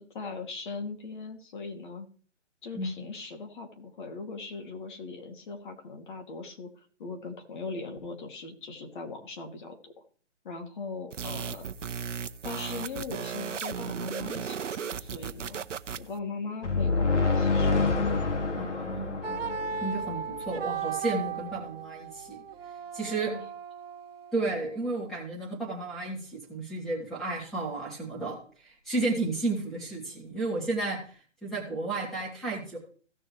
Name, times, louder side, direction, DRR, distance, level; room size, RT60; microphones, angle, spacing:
voice 1, 0.0-2.1 2.6-6.7 7.0-9.9 10.4-11.7 12.4-15.7 16.0-17.9 23.3-23.4, left 4 dB, 40° left, 3 dB, 2.4 m, -40 dB
sound 1, 11.1-16.2, right 7 dB, 75° right, 0.8 m, -36 dB
sound 2, 16.6-20.4, left 3 dB, 70° left, 2.2 m, -27 dB
voice 2, 18.6-19.4 19.8-22.4 22.9-23.3 24.3-28.4 28.6-31.0 31.4-32.8, right 2 dB, ahead, -4 dB, 2.8 m, -32 dB
sound 3, 19.2-25.1, right 6 dB, 55° right, 1.3 m, -37 dB
17.0 x 6.4 x 3.2 m, 0.43 s
hypercardioid pair, 150°, 37 cm